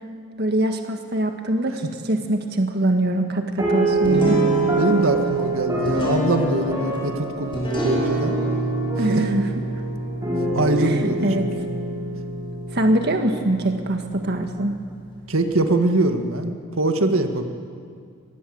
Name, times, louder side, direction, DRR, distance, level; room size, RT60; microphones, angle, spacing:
voice 1, 0.4-4.4 9.0-9.5 10.8-11.4 12.7-14.7, right 1 dB, 50° right, 5 dB, 1.7 m, -23 dB
sound 1, 3.6-13.3, right 3 dB, 15° right, 5.5 m, -25 dB
sound 2, 4.0-15.5, left 1 dB, 25° left, 5.6 m, -30 dB
voice 2, 4.8-8.3 9.1-9.2 10.5-11.5 15.3-17.4, right 2 dB, 85° right, 5 dB, 1.8 m, -23 dB
24.5 x 19.5 x 7.9 m, 2.2 s
head